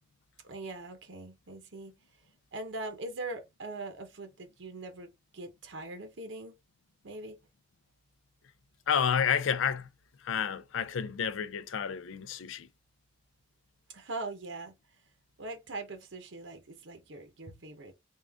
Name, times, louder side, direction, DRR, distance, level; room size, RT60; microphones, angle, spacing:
voice 1, 0.4-1.9 2.5-6.5 7.0-7.4 13.9-14.7 15.4-17.9, right 2 dB, 70° right, 0.8 m, -41 dB
voice 2, 8.9-9.9 10.2-12.7, left 7 dB, 85° left, 0.4 m, -30 dB
3.6 x 2.4 x 3.4 m
head